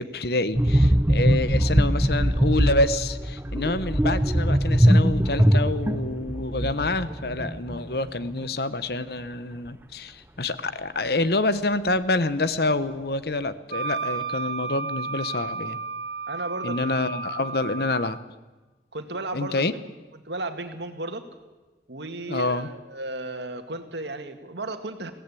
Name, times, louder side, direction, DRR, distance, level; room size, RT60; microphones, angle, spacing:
voice 1, 0.0-15.8 16.6-18.2 19.3-19.7 22.3-22.7, left 2 dB, 60° left, 13 dB, 1.0 m, -27 dB
sound 1, 0.5-8.0 8.2-8.4, equal, 10° right, 0.8 m, -21 dB
Wind instrument woodwind instrument, 13.7-18.2, right 4 dB, 60° right, 2.4 m, -32 dB
voice 2, 16.3-17.1 18.9-19.7 20.3-21.3 21.9-25.1, right 2 dB, 75° right, 7 dB, 2.0 m, -34 dB
22.0 x 16.5 x 8.4 m, 1.2 s
head